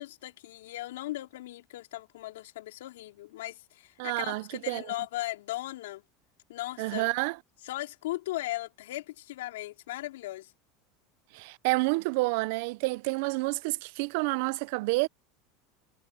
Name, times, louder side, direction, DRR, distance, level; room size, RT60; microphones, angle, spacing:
voice 1, 0.0-6.0 6.5-7.1 7.6-10.5, left 16 dB, 85° left, 3.8 m, -37 dB
voice 2, 4.0-4.9 6.8-7.4 11.3-15.1, right 25 dB, 70° right, 0.6 m, -29 dB
supercardioid pair, 110°, 0 cm